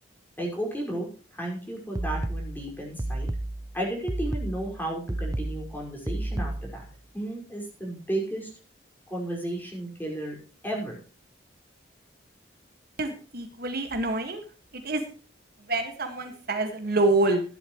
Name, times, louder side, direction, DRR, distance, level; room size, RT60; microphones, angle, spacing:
voice 1, 0.4-1.1 1.3-3.3 3.7-6.9 7.1-8.5 9.1-10.4 10.6-11.0, right 1 dB, 10° left, -1 dB, 5.4 m, -33 dB
sound 1, 2.0-6.9, right 1 dB, 20° right, 0.5 m, -32 dB
voice 2, 13.0-14.4 14.8-15.0 15.7-17.4, right 2 dB, 55° right, 5 dB, 1.9 m, -26 dB
15.0 x 11.5 x 3.1 m, 0.38 s
head